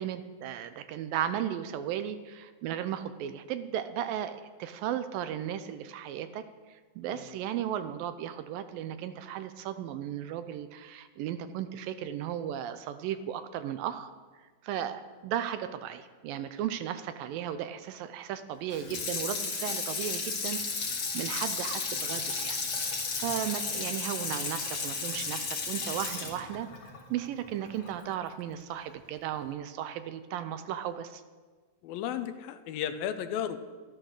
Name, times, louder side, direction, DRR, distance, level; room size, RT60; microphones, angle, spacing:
voice 1, 0.0-14.1 14.6-22.6 22.9-26.7 27.1-31.2, right 10 dB, 80° right, 11 dB, 2.2 m, -35 dB
Water tap faucet / Sink (filling or washing), 18.7-27.9 28.3-28.4, left 4 dB, 40° left, 2.5 m, -33 dB
voice 2, 31.8-33.6, left 10 dB, 80° left, 11 dB, 2.4 m, -34 dB
13.0 x 12.0 x 6.5 m, 1.4 s
omnidirectional pair, 4.3 m